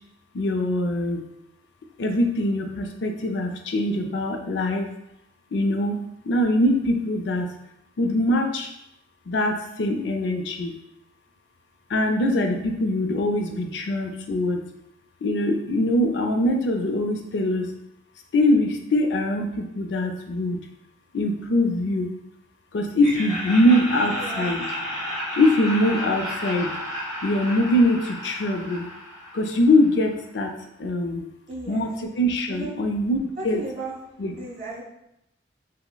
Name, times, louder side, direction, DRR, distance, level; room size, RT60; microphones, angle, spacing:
voice 1, 0.3-1.2 2.0-4.9 5.5-7.5 8.0-8.7 9.3-10.7 11.9-14.6 15.2-17.7 18.3-20.6 21.1-22.1 22.7-24.6 25.4-26.7 27.2-28.8 29.3-31.3 31.7-33.2 33.4-33.6 34.2-34.3, left 1 dB, 75° left, 4 dB, 0.4 m, -23 dB
Laughter, 23.0-29.9, equal, ahead, 0.9 m, -32 dB
voice 2, 24.0-24.6 31.5-31.9 32.5-32.7 33.4-34.0 34.3-34.8, right 2 dB, 50° right, -7 dB, 1.3 m, -35 dB
5.4 x 2.0 x 2.2 m, 0.83 s
head